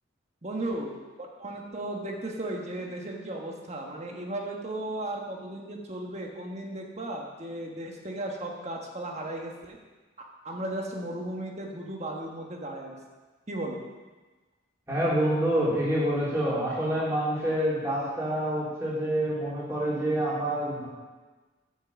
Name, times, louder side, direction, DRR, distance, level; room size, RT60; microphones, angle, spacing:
voice 1, 0.4-0.9 1.2-9.8 10.4-13.0 13.5-13.8, right 1 dB, 35° right, 0 dB, 1.4 m, -35 dB
voice 2, 14.9-20.9, right 1 dB, 15° right, -8 dB, 3.2 m, -27 dB
9.5 x 6.0 x 7.0 m, 1.3 s
head